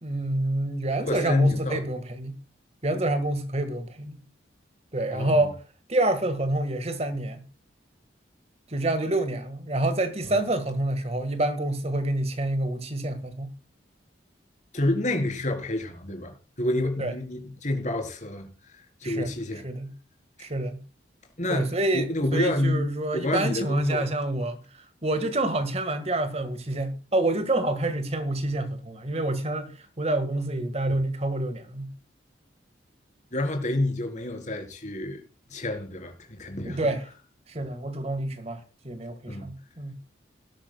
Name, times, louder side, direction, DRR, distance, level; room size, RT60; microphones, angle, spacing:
voice 1, 0.0-2.3 2.8-4.2 4.9-5.6 5.9-7.4 8.7-13.5 17.0-17.1 19.0-19.9 20.4-20.8 21.5-31.9 36.6-37.1 37.5-39.9, right 1 dB, 35° right, 1.7 m, -28 dB
voice 2, 1.0-1.8 5.1-5.4 10.2-10.4 14.7-18.5 19.0-19.6 21.4-24.1 33.3-35.2 35.5-36.9 39.3-39.5, left 1 dB, 40° left, 4.1 m, -28 dB
19.0 x 13.0 x 2.3 m
head